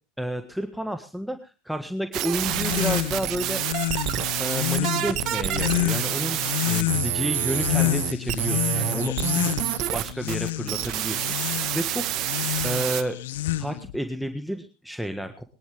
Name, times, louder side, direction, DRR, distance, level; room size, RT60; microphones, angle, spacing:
voice 1, 0.2-3.6 4.4-9.5 9.9-12.1 12.6-13.2 13.6-15.4, equal, ahead, 7 dB, 1.6 m, -31 dB
sound 1, 2.1-13.0, right 13 dB, 50° right, 1.1 m, -28 dB
sound 2, 2.4-14.0, left 16 dB, 75° left, 0.7 m, -29 dB
23.0 x 10.5 x 3.4 m, 0.31 s
hypercardioid pair, 85°, 0 cm